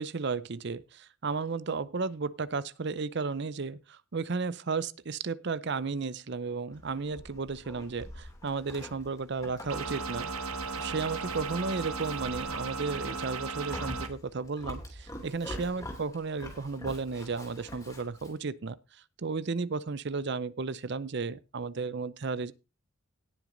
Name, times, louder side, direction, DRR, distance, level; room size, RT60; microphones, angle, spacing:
voice 1, 0.0-10.3 10.7-18.8 19.2-22.5, right 4 dB, 50° right, 0.6 m, -34 dB
Livestock farm animals working animals, 6.7-18.4, left 1 dB, 15° left, 2.7 m, -45 dB
sound 1, 9.7-14.1, right 4 dB, 80° right, 1.2 m, -36 dB
17.5 x 6.1 x 3.9 m
head